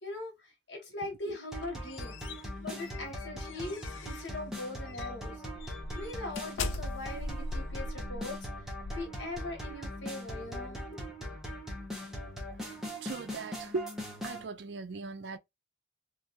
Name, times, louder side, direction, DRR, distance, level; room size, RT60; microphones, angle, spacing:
voice 1, 0.0-2.2 2.6-5.4 6.0-8.7 8.9-11.0, left 2 dB, 70° left, 1.3 m, -41 dB
sound 1, 1.4-4.4 4.9-5.1 5.5-9.8, left 2 dB, 90° left, 0.5 m, -41 dB
sound 2, 1.5-14.4, equal, 5° right, 1.0 m, -41 dB
voice 2, 13.0-13.9 14.2-15.4, right 3 dB, 65° right, 0.5 m, -38 dB
3.2 x 2.6 x 2.4 m
head